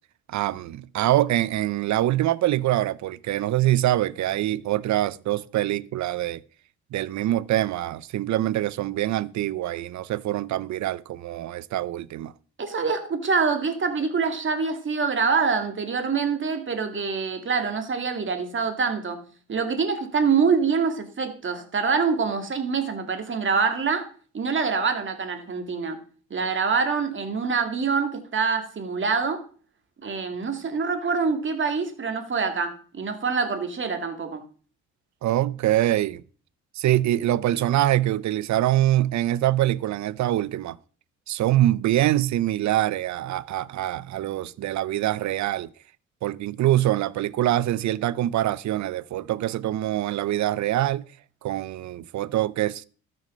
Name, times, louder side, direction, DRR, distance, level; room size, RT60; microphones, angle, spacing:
voice 1, 0.3-6.4 6.9-12.3 35.2-36.2 36.8-40.8 41.3-45.7 46.2-51.0 51.4-52.8, right 14 dB, 70° right, 0.7 m, -24 dB
voice 2, 12.6-19.2 19.5-24.1 24.3-26.0 26.3-29.4 30.0-34.4, right 5 dB, 40° right, 2.4 m, -25 dB
13.0 x 6.5 x 6.5 m
cardioid pair, 90°, 30 cm